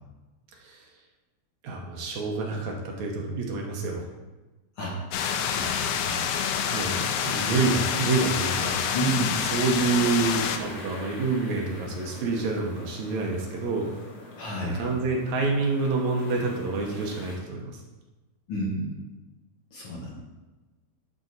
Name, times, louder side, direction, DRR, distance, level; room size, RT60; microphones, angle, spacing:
voice 1, 1.6-4.1 6.7-8.9 9.5-13.9 14.7-17.8, right 3 dB, 70° right, 0 dB, 2.3 m, -27 dB
sound 1, 5.1-10.6, left 8 dB, 85° left, 1.4 m, -27 dB
voice 2, 5.5-6.2 8.9-9.4 14.4-14.9 18.5-18.9 19.7-20.2, right 1 dB, 55° left, -4 dB, 1.9 m, -30 dB
sound 2, 6.2-17.4, left 2 dB, 70° left, 2.6 m, -43 dB
11.0 x 4.0 x 4.0 m, 1.1 s
omnidirectional pair, 3.5 m